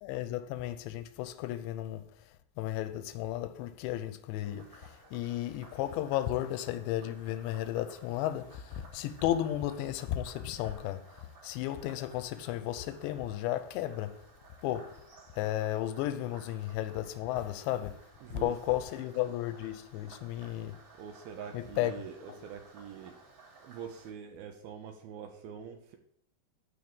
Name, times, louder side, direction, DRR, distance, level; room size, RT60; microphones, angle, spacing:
voice 1, 0.0-14.2 14.6-15.0 15.4-20.8 21.5-21.9 22.3-22.4, left 13 dB, 85° left, 3.0 m, -34 dB
Frog, 4.4-24.1, right 3 dB, 25° right, 2.9 m, -57 dB
voice 2, 18.2-18.5 20.9-23.2 23.6-26.0, right 7 dB, 75° right, 2.4 m, -44 dB
12.0 x 4.6 x 6.8 m
omnidirectional pair, 5.1 m